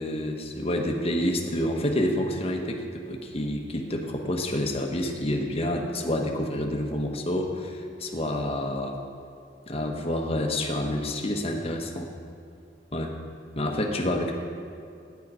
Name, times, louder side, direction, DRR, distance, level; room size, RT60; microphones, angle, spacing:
voice 1, 0.0-8.9 9.7-12.1 12.9-13.1 13.6-14.3, left 1 dB, 35° left, 3 dB, 1.0 m, -28 dB
9.6 x 9.5 x 5.5 m, 2.5 s
head